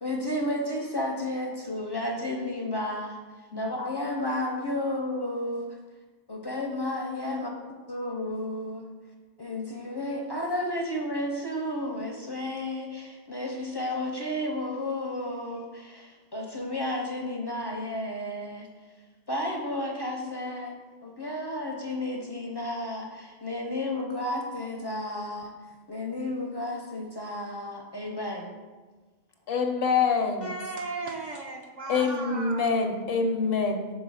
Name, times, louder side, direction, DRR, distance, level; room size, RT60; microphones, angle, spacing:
voice 1, 0.0-3.2 3.5-5.7 6.3-7.5 7.9-8.8 9.4-18.7 19.3-20.8 21.0-25.5 25.9-28.5, left 1 dB, 30° left, 1 dB, 0.5 m, -32 dB
voice 2, 29.5-30.6 31.9-33.9, left 5 dB, 65° left, 4 dB, 0.8 m, -26 dB
voice 3, 30.4-32.7, right 3 dB, 55° right, 1 dB, 0.6 m, -36 dB
4.7 x 3.8 x 5.4 m, 1.3 s
omnidirectional pair, 1.1 m